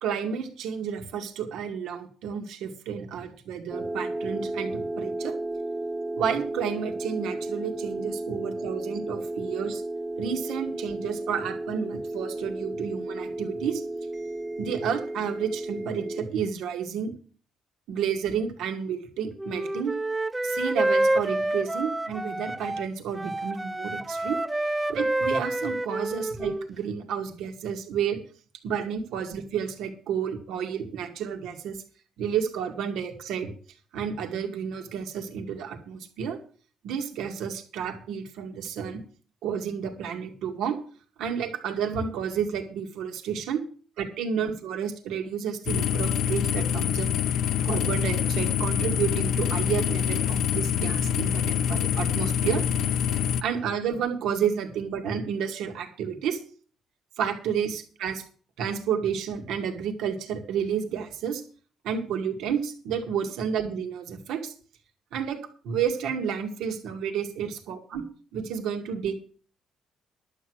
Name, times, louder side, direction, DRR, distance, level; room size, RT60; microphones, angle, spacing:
voice 1, 0.0-5.3 6.1-9.8 10.2-13.8 14.6-17.1 17.9-19.9 20.4-24.4 24.9-28.2 28.6-31.8 32.2-33.5 33.9-36.4 36.8-39.0 39.4-40.8 41.2-43.6 44.0-47.1 47.6-52.6 53.4-56.4 57.2-58.2 58.6-61.4 61.8-64.5 65.1-65.4 65.6-68.0 68.3-69.1, right 7 dB, 85° right, 4 dB, 2.1 m, -31 dB
sound 1, 3.7-16.3, right 2 dB, 30° right, 1.4 m, -33 dB
Wind instrument woodwind instrument, 19.4-22.9 23.1-26.7, right 2 dB, 15° right, 0.5 m, -28 dB
sound 2, 45.7-53.4, left 9 dB, 75° left, 0.6 m, -25 dB
11.5 x 8.4 x 6.3 m, 0.41 s
cardioid pair, 95°, 0 cm